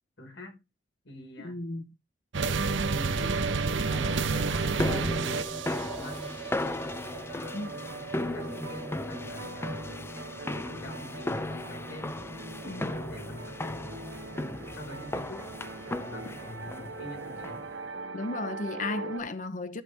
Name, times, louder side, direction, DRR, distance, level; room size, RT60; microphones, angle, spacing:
voice 1, 0.2-0.6 1.0-1.6 2.9-5.2 5.8-6.4 6.8-9.7 10.6-12.2 12.6-14.0 14.4-15.5 16.0-17.7, left 1 dB, 75° left, 4.5 m, -45 dB
voice 2, 1.4-1.9 7.5-7.7 12.6-13.1 18.1-19.8, left 2 dB, 45° left, 0.8 m, -34 dB
sound 1, 2.3-19.2, right 4 dB, 80° right, 0.9 m, -34 dB
sound 2, 3.9-17.8, left 1 dB, 15° left, 0.4 m, -36 dB
12.0 x 6.2 x 3.3 m
head